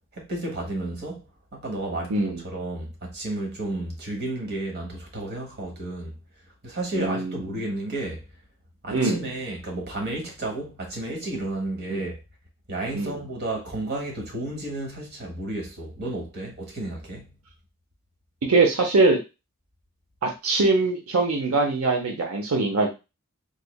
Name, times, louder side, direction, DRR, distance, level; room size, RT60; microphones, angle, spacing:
voice 1, 0.1-1.3 1.5-6.2 6.6-8.2 8.8-12.2 12.7-17.3, right 2 dB, 50° right, 1.2 m, -32 dB
voice 2, 2.1-2.4 6.9-7.6 8.9-9.3 11.9-12.1 12.9-13.2 18.5-19.2 20.2-22.9, right 3 dB, 90° right, 0.7 m, -22 dB
3.6 x 3.2 x 2.3 m
head